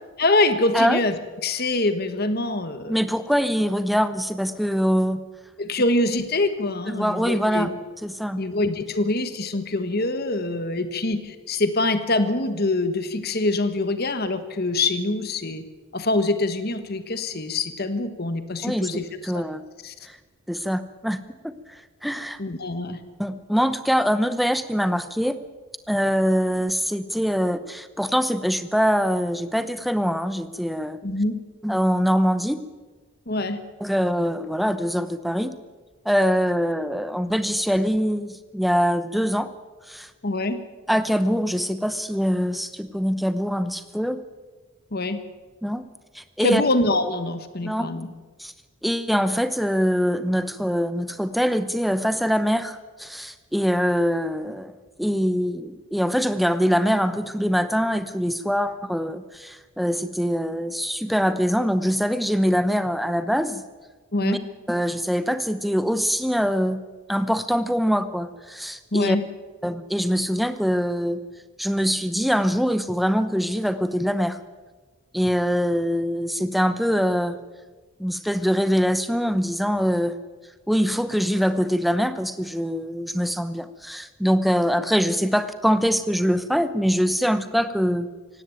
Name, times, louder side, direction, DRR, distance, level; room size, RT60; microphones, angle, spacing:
voice 1, 0.2-3.0 5.6-7.7 8.4-15.6 15.9-19.0 19.3-19.4 19.8-19.9 22.4-23.0 31.0-31.4 33.3-33.6 40.2-40.6 44.9-45.2 46.4-48.1 64.1-64.4 68.9-69.2, left 2 dB, 45° left, 10 dB, 1.4 m, -24 dB
voice 2, 2.9-5.2 6.9-7.7 8.0-8.4 18.6-18.9 19.2-19.6 20.0-20.2 20.5-21.2 21.4-22.4 23.2-25.4 25.9-31.0 31.6-32.6 33.8-35.5 36.0-39.5 39.9-40.1 40.9-44.2 45.6-45.9 46.1-46.6 47.6-47.9 48.4-48.5 48.8-54.7 55.0-63.6 64.2-64.4 64.7-66.8 67.1-69.2 69.6-71.2 71.6-74.4 75.1-77.4 78.0-80.1 80.7-88.1, equal, ahead, 12 dB, 0.8 m, -23 dB
17.5 x 17.0 x 9.1 m, 1.3 s
head